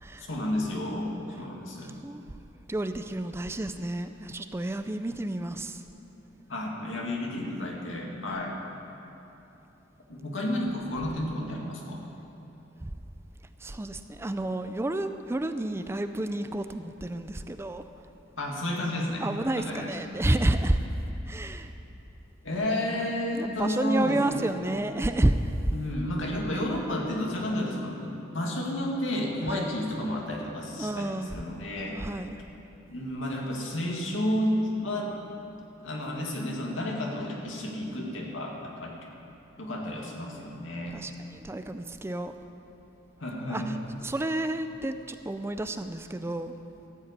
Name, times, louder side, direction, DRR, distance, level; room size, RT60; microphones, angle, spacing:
voice 1, 0.3-1.9 6.5-8.6 10.1-12.0 18.4-19.3 19.5-20.0 22.4-24.5 25.7-32.0 32.9-35.2 35.8-39.0 39.6-41.0 43.2-43.8, left 1 dB, 85° left, -1 dB, 2.1 m, -31 dB
voice 2, 1.8-2.2 2.7-5.8 12.8-12.9 13.6-17.9 19.2-20.8 21.2-21.7 23.3-25.5 29.5-29.7 30.8-31.3 31.9-32.4 40.9-42.3 43.5-43.8 44.0-46.5, right 1 dB, 15° right, 9 dB, 0.4 m, -30 dB
14.0 x 7.9 x 8.2 m, 2.9 s
head